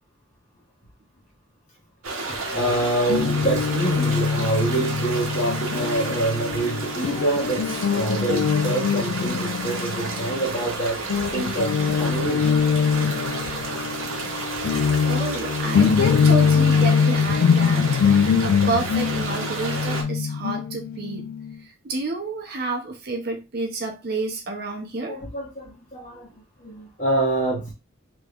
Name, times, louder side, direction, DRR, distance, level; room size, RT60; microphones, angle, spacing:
sound 1, 2.0-20.0, right 3 dB, 85° right, 0.8 m, -31 dB
voice 1, 2.3-11.0 11.3-12.6 25.1-26.3 26.6-27.7, right 2 dB, 35° left, -3 dB, 0.9 m, -26 dB
Guitar, 3.1-10.8 11.1-21.5, left 6 dB, 85° left, 0.3 m, -23 dB
voice 2, 15.1-18.0 18.4-21.3 21.8-25.2, right 3 dB, 50° right, 2 dB, 0.7 m, -29 dB
3.4 x 3.0 x 2.4 m, 0.27 s
head